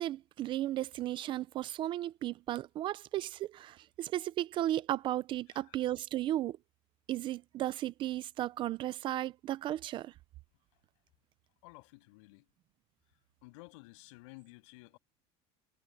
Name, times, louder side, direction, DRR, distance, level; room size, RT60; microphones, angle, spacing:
voice 1, 0.0-6.6 7.1-10.1, right 13 dB, 35° right, 0.4 m, -35 dB
voice 2, 11.6-12.5 13.4-15.0, left 26 dB, 85° left, 7.4 m, -54 dB
cardioid pair, 165°, 15 cm